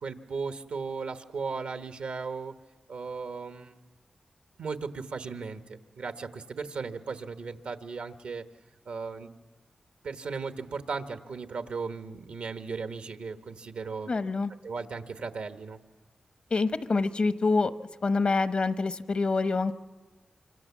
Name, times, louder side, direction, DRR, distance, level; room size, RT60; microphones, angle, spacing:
voice 1, 0.0-2.5 2.9-3.8 4.6-8.4 8.9-9.4 10.0-14.1 14.6-15.8, right 4 dB, 85° right, 8 dB, 1.2 m, -36 dB
voice 2, 14.1-14.5 16.5-17.7 18.0-19.7, left 3 dB, 55° left, 12 dB, 0.9 m, -26 dB
25.5 x 25.5 x 7.3 m, 1.3 s
cardioid pair, 45°, 2 cm